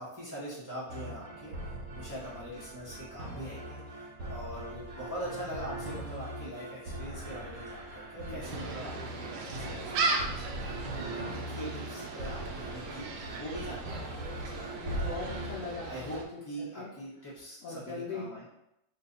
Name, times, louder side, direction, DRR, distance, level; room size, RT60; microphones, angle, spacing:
voice 1, 0.0-1.5 1.9-14.8 15.5-18.5, equal, 15° right, -9 dB, 0.8 m, -43 dB
sound 1, 0.9-15.6, right 1 dB, 65° right, 0.9 m, -41 dB
voice 2, 8.2-8.6 14.7-16.9 17.6-18.2, left 3 dB, 65° left, -5 dB, 0.9 m, -41 dB
Gull seagull, 8.4-16.2, right 3 dB, 90° right, 1.3 m, -36 dB
3.2 x 2.2 x 3.9 m, 0.83 s
omnidirectional pair, 1.9 m